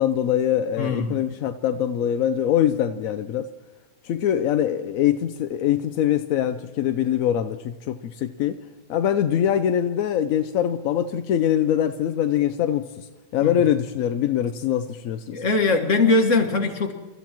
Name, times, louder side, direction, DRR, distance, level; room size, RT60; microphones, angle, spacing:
voice 1, 0.0-3.5 4.0-7.6 7.9-8.6 8.9-13.0 13.3-15.4, left 10 dB, 65° left, 0.9 m, -23 dB
voice 2, 0.8-1.2 13.4-13.5 15.3-16.9, left 3 dB, 45° left, 1.9 m, -21 dB
28.5 x 14.0 x 3.0 m
omnidirectional pair, 1.8 m